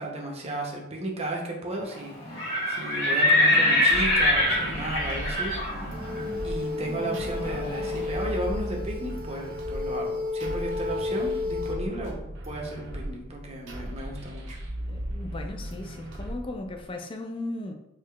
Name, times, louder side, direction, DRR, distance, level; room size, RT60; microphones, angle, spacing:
voice 1, 0.0-5.9 6.4-12.2 12.4-14.6, right 1 dB, 30° right, -1 dB, 0.6 m, -34 dB
Livestock farm animals working animals, 2.2-8.1, left 1 dB, 80° left, 1.3 m, -25 dB
sound 1, 3.9-16.9, equal, 65° right, 0.8 m, -37 dB
sound 2, 5.9-11.7, left 3 dB, 90° right, 1.0 m, -32 dB
voice 2, 14.9-17.7, left 2 dB, 25° left, 5 dB, 0.4 m, -36 dB
4.5 x 2.8 x 2.3 m, 0.86 s
head